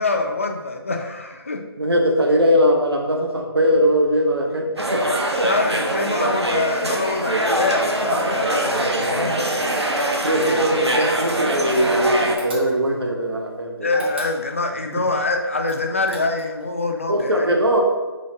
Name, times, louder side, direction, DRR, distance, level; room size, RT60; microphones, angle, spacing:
voice 1, 0.0-1.6 5.4-9.5 13.8-17.5, left 3 dB, 30° left, 3 dB, 0.3 m, -25 dB
voice 2, 1.8-5.0 5.4-5.5 10.2-13.9 14.9-15.1 17.1-17.8, equal, 70° right, 0 dB, 0.9 m, -20 dB
sound 1, 4.8-12.4, right 1 dB, 85° right, 0.7 m, -23 dB
sound 2, 12.4-13.1 13.9-14.8 15.6-16.6, equal, 25° right, 0.6 m, -35 dB
3.9 x 3.1 x 3.9 m, 1.2 s
figure-of-eight pair, 155°, 14 cm